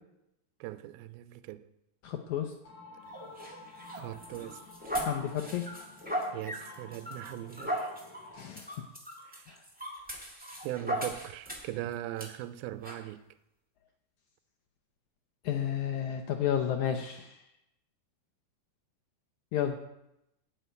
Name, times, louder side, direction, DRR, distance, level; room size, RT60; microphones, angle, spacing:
voice 1, 0.6-1.7 3.9-4.6 6.3-8.0 9.2-9.5 10.6-13.2, right 14 dB, 85° right, 2.5 m, -40 dB
voice 2, 2.0-2.5 5.0-5.7 8.3-8.8 9.5-9.6 15.4-17.4 19.5-19.8, left 9 dB, 75° left, 1.8 m, -32 dB
sound 1, 2.6-8.5, left 4 dB, 50° left, 3.9 m, -53 dB
sound 2, 3.1-11.8 12.2-12.3 12.8-13.0, equal, 5° right, 0.7 m, -38 dB
13.0 x 5.7 x 9.1 m
omnidirectional pair, 4.2 m